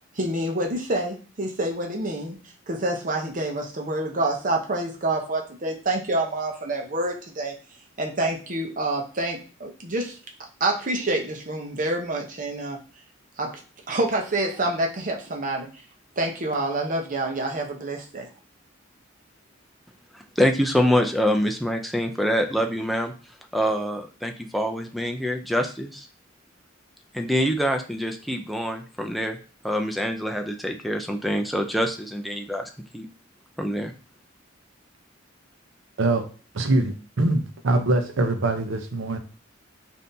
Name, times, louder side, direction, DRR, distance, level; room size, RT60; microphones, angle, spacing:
voice 1, 0.2-2.4 2.7-7.6 8.0-10.2 10.6-12.8 13.4-13.5 13.9-15.7 16.2-18.3, right 2 dB, 40° right, 0.8 m, -27 dB
voice 2, 20.1-23.1 23.5-26.1 27.1-29.4 29.6-33.1 33.6-33.9, equal, ahead, 0.4 m, -25 dB
voice 3, 36.5-39.2, right 2 dB, 80° right, 0.7 m, -23 dB
5.3 x 2.7 x 2.7 m
head